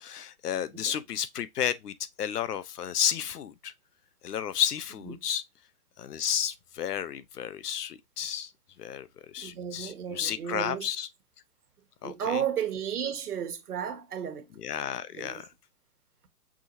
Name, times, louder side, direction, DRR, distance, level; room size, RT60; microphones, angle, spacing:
voice 1, 0.0-3.7 4.2-5.4 6.0-8.5 8.8-11.1 12.0-12.4 14.6-15.5, left 9 dB, 90° left, 0.8 m, -32 dB
voice 2, 9.4-10.9 12.0-14.5 15.2-15.5, right 8 dB, 80° right, 1.4 m, -33 dB
6.1 x 3.1 x 2.6 m
hypercardioid pair, 155°, 45 cm